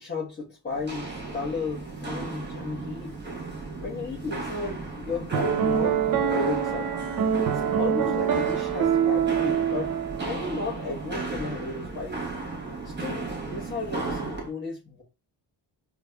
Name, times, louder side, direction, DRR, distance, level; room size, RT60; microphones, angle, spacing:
voice 1, 0.0-3.2 3.8-6.9 7.4-9.9 10.2-12.2 12.8-15.0, left 4 dB, 20° left, 1.1 m, -34 dB
Walk footsteps, 0.7-14.5, right 3 dB, 25° right, 1.2 m, -35 dB
Piano, 5.3-10.6, right 8 dB, 50° right, 0.6 m, -25 dB
4.7 x 2.4 x 2.3 m
cardioid pair, 90°, 45 cm